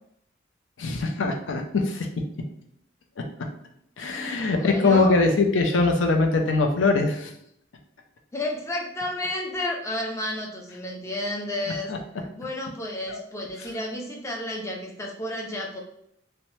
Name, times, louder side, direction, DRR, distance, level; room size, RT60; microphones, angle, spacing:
voice 1, 0.8-2.1 4.0-7.3 11.9-12.0 13.1-13.2 13.6-13.7, left 3 dB, 90° left, 4 dB, 0.5 m, -22 dB
voice 2, 4.5-5.2 8.3-11.9 12.2-15.8, left 1 dB, 15° left, -1 dB, 0.4 m, -31 dB
2.7 x 2.1 x 3.1 m, 0.73 s
head